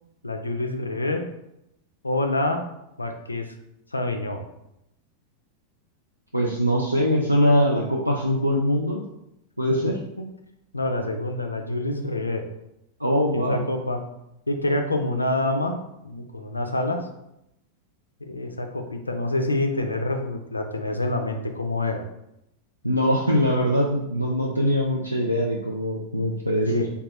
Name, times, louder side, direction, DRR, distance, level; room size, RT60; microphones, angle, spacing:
voice 1, 0.2-1.2 2.0-2.6 3.0-3.4 3.9-4.4 10.2-10.3 10.7-12.4 13.3-14.0 14.5-15.8 16.0-17.0 18.2-22.0 26.7-26.9, left 2 dB, 80° left, 5 dB, 0.4 m, -26 dB
voice 2, 6.3-9.0 9.6-10.0 13.0-13.7 22.8-26.9, equal, 90° right, -2 dB, 0.3 m, -22 dB
3.5 x 2.3 x 3.1 m, 0.83 s
figure-of-eight pair, 90°, 0 cm